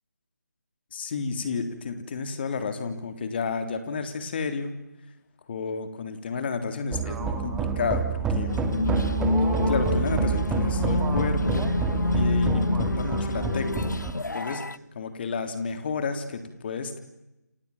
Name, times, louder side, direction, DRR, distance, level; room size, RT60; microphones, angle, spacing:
voice 1, 0.9-4.8 5.5-8.0 8.3-8.5 9.7-11.7 12.1-14.1 14.3-17.0, left 5 dB, 35° left, 8 dB, 3.5 m, -31 dB
sound 1, 6.9-14.1, right 5 dB, 5° right, 2.2 m, -28 dB
sound 2, 8.5-14.8, left 2 dB, 85° left, 1.0 m, -27 dB
29.0 x 26.5 x 7.3 m, 0.94 s
figure-of-eight pair, 160°, 9 cm